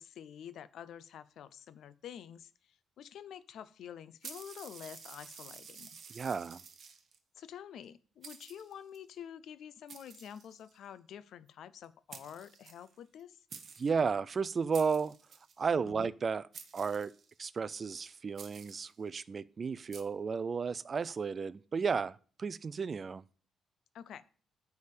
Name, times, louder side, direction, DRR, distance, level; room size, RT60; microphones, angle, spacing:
voice 1, 0.0-5.9 7.4-13.4 15.8-16.1 23.9-24.3, left 9 dB, 70° left, 0.5 m, -48 dB
sound 1, 4.2-7.2 7.8-7.9 8.2-9.0 9.9-10.8 11.8-11.9 12.1-13.2 13.5-14.0 14.7-15.6 16.5-17.4 18.4-18.9 19.9-20.0, right 6 dB, 55° right, 1.0 m, -51 dB
voice 2, 6.1-6.6 13.8-15.1 15.6-16.5 16.7-17.1 17.4-23.2, right 5 dB, 40° right, 0.4 m, -33 dB
9.5 x 3.5 x 6.6 m
cardioid pair, 90°, 0 cm